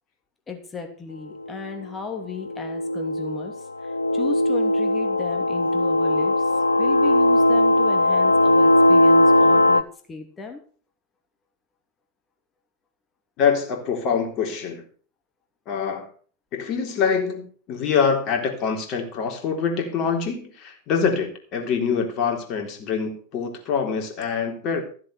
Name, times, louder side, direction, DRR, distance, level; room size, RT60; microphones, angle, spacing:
voice 1, 0.5-6.5 6.8-10.6, left 5 dB, 20° left, 4 dB, 2.9 m, -35 dB
sound 1, 1.5-1.6 2.4-9.8, left 1 dB, 80° left, 0.5 m, -19 dB
voice 2, 13.4-14.8 15.7-16.1 16.5-24.8, left 6 dB, 35° left, 3 dB, 3.6 m, -25 dB
14.5 x 7.6 x 6.6 m, 0.44 s
figure-of-eight pair, 90°, 0 cm